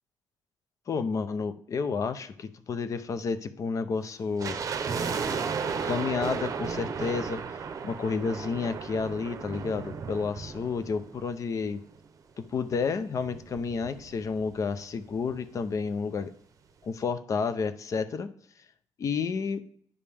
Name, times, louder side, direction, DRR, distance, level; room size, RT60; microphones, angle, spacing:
voice 1, 0.9-4.6 5.8-7.4 7.8-11.8 12.4-16.3 16.8-18.3 19.0-19.6, left 5 dB, 40° left, 12 dB, 0.5 m, -30 dB
sound 1, 4.4-11.7 11.9-12.0 12.7-14.5 14.8-14.9 15.1-15.4 15.8-15.9, right 5 dB, 40° right, 0.7 m, -34 dB
9.8 x 5.1 x 3.4 m, 0.64 s
cardioid pair, 120°, 8 cm